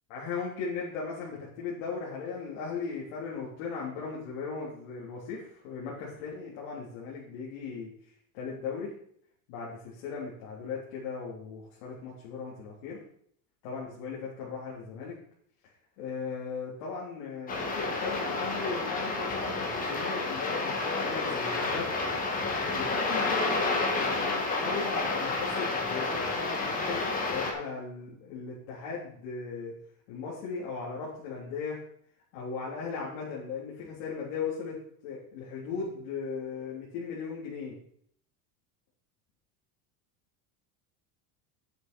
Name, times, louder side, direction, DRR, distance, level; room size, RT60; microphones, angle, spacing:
voice 1, 0.1-7.9 8.3-8.9 9.5-13.0 13.6-15.2 16.0-22.2 22.7-29.7 30.1-31.8 32.3-37.8, left 5 dB, 65° left, -5 dB, 3.5 m, -37 dB
sound 1, 17.5-27.5, left 3 dB, 20° left, 1.5 m, -30 dB
9.3 x 8.1 x 5.3 m, 0.64 s
cardioid pair, 175°, 40 cm